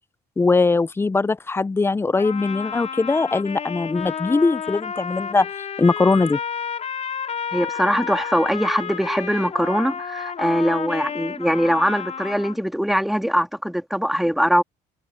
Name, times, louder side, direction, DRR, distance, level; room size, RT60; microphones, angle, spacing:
voice 1, 0.4-5.5 5.8-6.4, left 3 dB, 15° left, 0.4 m, -20 dB
Trumpet, 2.2-12.6, left 7 dB, 40° left, 4.7 m, -31 dB
voice 2, 7.5-14.6, equal, ahead, 1.9 m, -22 dB
cardioid pair, 110°, 17 cm